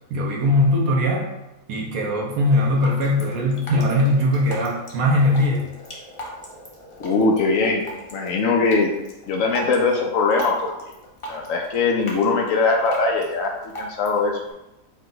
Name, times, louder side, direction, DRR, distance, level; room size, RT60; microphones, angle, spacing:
voice 1, 0.1-1.3 1.7-5.7, left 1 dB, 90° right, -2 dB, 1.3 m, -20 dB
Drip, 2.5-14.5, right 1 dB, 35° left, 0.5 m, -39 dB
voice 2, 7.0-7.8 8.1-8.9 9.3-10.7 11.3-14.3, left 3 dB, 75° left, 1 dB, 1.0 m, -21 dB
4.7 x 2.2 x 3.9 m, 0.96 s
omnidirectional pair, 1.5 m